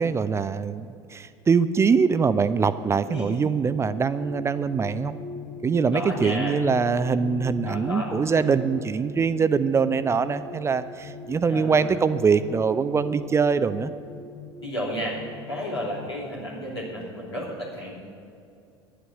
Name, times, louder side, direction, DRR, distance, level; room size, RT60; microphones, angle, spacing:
voice 1, 0.0-5.1 5.6-13.9, right 5 dB, 20° right, 13 dB, 0.4 m, -23 dB
voice 2, 3.0-3.4 5.9-6.6 7.6-8.1 11.5-11.9 14.6-15.2 15.5-17.9, equal, 85° left, -6 dB, 3.0 m, -32 dB
sound 1, 3.3-16.1, left 4 dB, 30° left, 1.0 m, -39 dB
11.0 x 8.2 x 8.8 m, 2.5 s
figure-of-eight pair, 65°, 14 cm